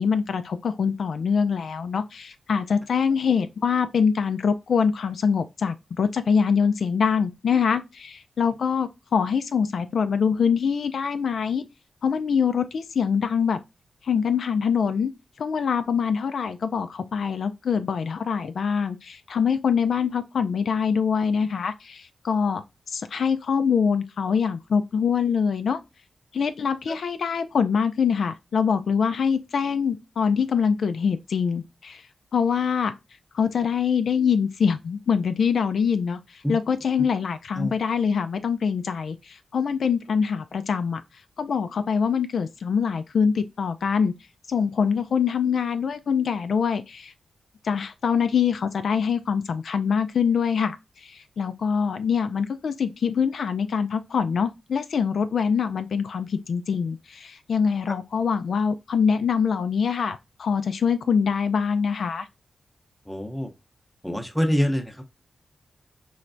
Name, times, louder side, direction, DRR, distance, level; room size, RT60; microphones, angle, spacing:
voice 1, 0.0-11.6 12.0-13.6 14.0-15.1 15.4-22.6 22.9-25.8 26.3-32.0 32.3-32.9 33.3-41.0 41.4-44.1 44.5-47.1 47.6-62.3, left 6 dB, 70° left, 0.3 m, -24 dB
voice 2, 63.1-63.5 64.0-65.0, equal, 5° left, 0.7 m, -25 dB
4.4 x 3.1 x 2.5 m
wide cardioid pair, 140°, 0 cm